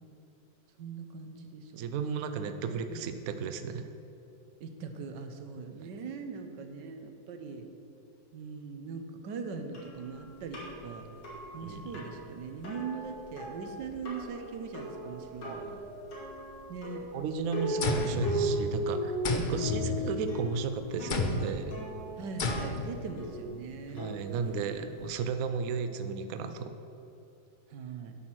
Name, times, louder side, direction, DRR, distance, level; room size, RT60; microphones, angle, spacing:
voice 1, 0.8-1.9 2.2-3.1 4.6-7.6 8.3-11.1 11.5-15.8 16.7-17.1 17.6-18.0 19.3-19.7 22.2-24.1 24.4-24.8 27.7-28.2, right 5 dB, 80° right, 6 dB, 1.5 m, -41 dB
voice 2, 1.8-3.9 11.6-11.8 15.4-15.7 17.1-21.8 23.9-26.7, right 6 dB, 65° right, 9 dB, 1.0 m, -34 dB
sound 1, 9.7-25.1, right 1 dB, 85° left, 3.0 m, -38 dB
sound 2, 17.8-18.9 19.2-20.5 21.1-21.6 22.4-23.0, left 3 dB, 50° left, 0.6 m, -32 dB
9.8 x 6.2 x 7.4 m, 2.8 s
omnidirectional pair, 1.8 m